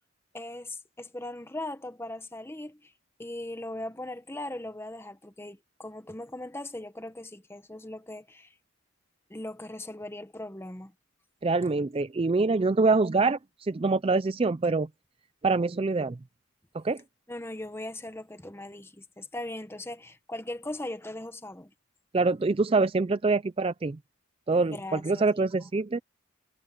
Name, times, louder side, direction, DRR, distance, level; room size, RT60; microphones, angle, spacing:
voice 1, 0.3-2.9 3.2-8.5 9.3-10.9 17.3-21.7 24.5-25.4, left 1 dB, 10° left, 1.0 m, -39 dB
voice 2, 11.4-14.9 15.4-16.2 16.7-17.0 22.1-24.0 24.5-26.0, right 3 dB, 25° right, 0.3 m, -25 dB
head